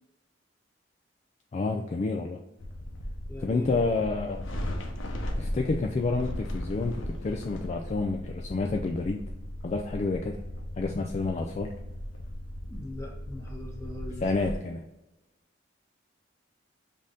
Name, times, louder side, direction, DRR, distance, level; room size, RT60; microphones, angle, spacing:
voice 1, 1.5-2.4 3.4-4.5 5.4-9.2 9.6-10.4 10.8-11.7 14.2-14.9, left 3 dB, 35° left, 3 dB, 0.3 m, -29 dB
sound 1, 2.6-14.5, left 1 dB, 85° left, 0.7 m, -37 dB
voice 2, 3.3-3.8 12.7-14.2, left 1 dB, 15° left, -3 dB, 1.1 m, -40 dB
5.2 x 2.7 x 3.6 m, 0.97 s
head